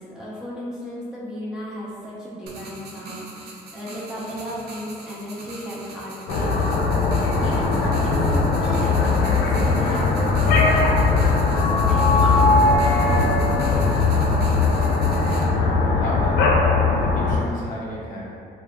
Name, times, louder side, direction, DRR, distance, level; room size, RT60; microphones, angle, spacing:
voice 1, 0.0-6.5 7.2-11.1 11.6-14.3, equal, 5° right, -8 dB, 0.4 m, -34 dB
sound 1, 2.5-15.4, right 2 dB, 70° right, 0.5 m, -41 dB
sound 2, 6.3-17.4, left 3 dB, 80° left, 0.4 m, -19 dB
voice 2, 15.5-18.3, equal, 50° left, -6 dB, 0.8 m, -34 dB
2.3 x 2.0 x 3.0 m, 2.4 s
cardioid pair, 110°, 17 cm